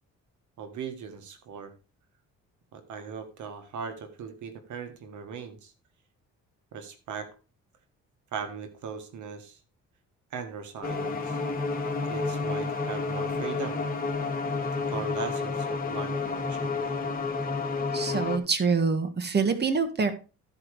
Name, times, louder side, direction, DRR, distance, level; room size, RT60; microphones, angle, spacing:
voice 1, 0.6-1.7 2.7-5.7 6.7-7.3 8.3-9.6 10.3-11.4 12.0-13.8 14.6-16.9, right 6 dB, 75° right, 8 dB, 1.6 m, -39 dB
sound 1, 10.8-18.4, left 4 dB, 30° left, 2.2 m, -30 dB
voice 2, 17.9-20.1, right 5 dB, 35° right, 9 dB, 1.6 m, -25 dB
13.5 x 4.9 x 4.8 m, 0.33 s
cardioid pair, 90°, 30 cm